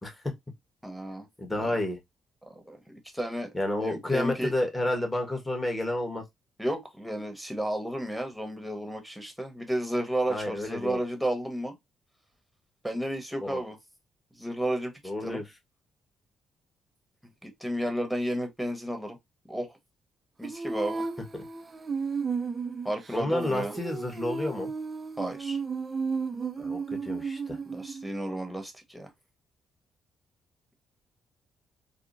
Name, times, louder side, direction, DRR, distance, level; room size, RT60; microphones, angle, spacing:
voice 1, 0.0-0.3 1.4-2.0 3.5-6.2 10.3-11.0 13.4-13.6 15.0-15.4 23.1-24.7 26.6-27.6, left 1 dB, 15° left, 1.3 m, -30 dB
voice 2, 0.8-1.3 1.6-1.7 2.4-3.5 3.8-4.5 6.6-11.8 12.8-13.8 14.4-14.9 15.2-15.4 17.4-19.2 19.5-19.8 20.4-21.0 22.8-23.7 25.2-25.6 27.7-29.1, right 1 dB, ahead, 1.1 m, -32 dB
Female singing, 20.4-28.1, right 5 dB, 35° right, 0.4 m, -34 dB
3.6 x 2.1 x 2.5 m
supercardioid pair, 65°, 0 cm